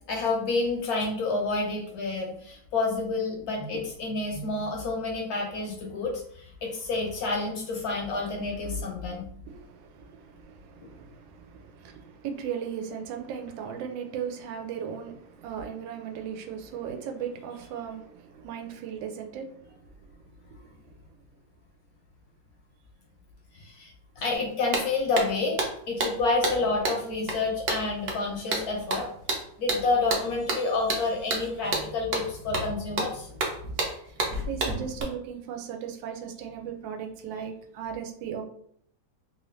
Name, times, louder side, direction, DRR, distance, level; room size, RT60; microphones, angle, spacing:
voice 1, 0.1-9.3 23.5-23.9 24.2-29.1 29.6-33.3, left 3 dB, 65° left, 0 dB, 1.0 m, -29 dB
voice 2, 9.4-20.2 20.6-20.8 34.5-38.4, right 7 dB, 90° right, 4 dB, 1.3 m, -37 dB
sound 1, 24.3-24.4 24.7-35.0, right 2 dB, 60° right, 0.8 m, -31 dB
3.2 x 2.7 x 3.0 m, 0.66 s
omnidirectional pair, 2.0 m